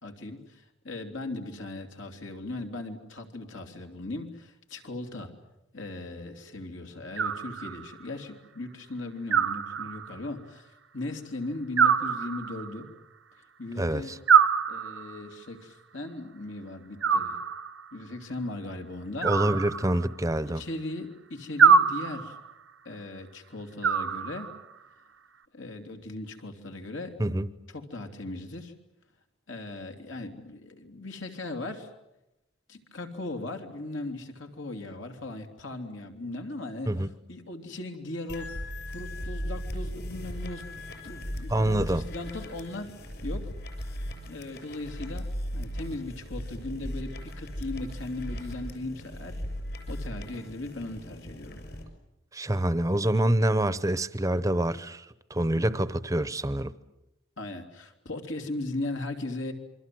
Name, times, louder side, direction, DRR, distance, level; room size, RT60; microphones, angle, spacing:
voice 1, 0.0-5.3 5.7-10.7 10.9-12.9 13.6-14.1 14.7-17.4 17.9-19.3 20.5-22.4 22.8-24.5 25.5-27.2 27.7-28.7 29.5-31.9 32.7-36.9 37.3-38.5 38.9-40.6 41.0-43.5 43.8-43.9 44.3-45.3 45.5-49.4 49.9-51.7 57.4-59.5, left 2 dB, 75° left, 3.1 m, -38 dB
Animal, 7.2-8.0 9.3-10.3 11.8-12.8 14.3-15.3 17.0-17.9 19.2-20.3 21.6-22.5 23.8-24.7, right 6 dB, 80° right, 1.1 m, -24 dB
voice 2, 13.8-14.2 19.2-20.6 27.2-27.5 36.9-37.1 41.5-42.0 52.3-56.7, right 1 dB, 15° right, 0.9 m, -26 dB
sound 1, 38.3-51.8, equal, 55° left, 6.6 m, -37 dB
28.0 x 24.0 x 7.8 m
head